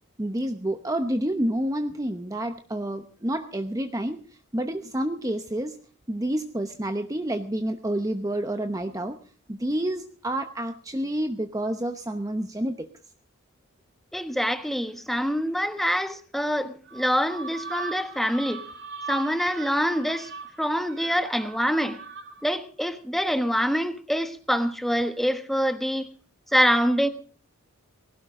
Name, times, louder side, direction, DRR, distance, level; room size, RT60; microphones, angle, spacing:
voice 1, 0.2-4.2 4.5-5.8 6.1-9.2 9.5-12.9, right 1 dB, 15° right, 7 dB, 0.9 m, -29 dB
voice 2, 14.1-18.6 19.1-20.3 20.6-22.0 22.4-26.1 26.5-27.1, equal, ahead, 9 dB, 1.2 m, -25 dB
sound 1, 16.8-22.6, right 5 dB, 50° right, 3.2 m, -39 dB
19.5 x 17.0 x 3.7 m, 0.41 s
head